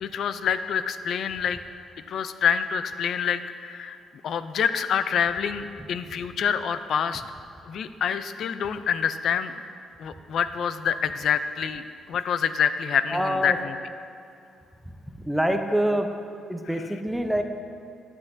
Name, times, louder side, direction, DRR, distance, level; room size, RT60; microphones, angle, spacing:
voice 1, 0.0-1.6 2.1-4.0 4.2-7.2 7.7-9.5 10.0-11.8 12.1-13.7, left 7 dB, 65° left, 12 dB, 0.3 m, -26 dB
voice 2, 13.1-13.6 15.1-16.1 16.5-17.4, equal, ahead, 5 dB, 0.6 m, -25 dB
9.8 x 8.3 x 2.6 m, 2.4 s
cardioid pair, 90°, 0 cm